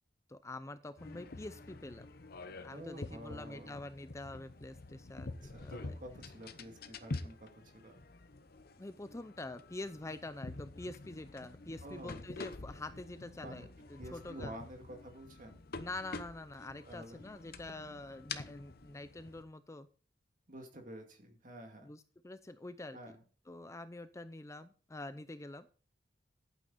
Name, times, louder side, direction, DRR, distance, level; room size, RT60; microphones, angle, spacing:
voice 1, 0.3-2.1 2.6-6.0 8.8-14.6 15.7-19.9 21.8-23.0 23.5-25.7, left 2 dB, 15° left, 12 dB, 0.5 m, -46 dB
sound 1, 1.0-19.4, left 3 dB, 55° left, 0.9 m, -47 dB
voice 2, 2.7-3.8 5.3-8.1 11.8-12.2 13.4-13.7 14.0-15.6 16.9-17.2 20.5-21.9 22.9-23.1, right 1 dB, 45° right, 4 dB, 2.3 m, -50 dB
11.5 x 9.0 x 4.1 m, 0.38 s
head